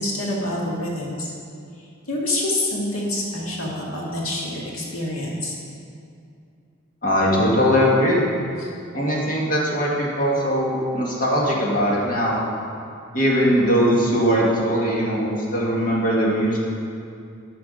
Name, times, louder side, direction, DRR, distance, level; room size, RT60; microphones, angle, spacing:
voice 1, 0.0-1.3 2.1-5.5 8.6-8.7, left 1 dB, 80° left, -3 dB, 1.9 m, -26 dB
voice 2, 7.0-8.2 8.9-12.4 13.1-16.6, equal, 40° left, -4 dB, 1.9 m, -20 dB
11.5 x 5.9 x 5.2 m, 2.5 s
head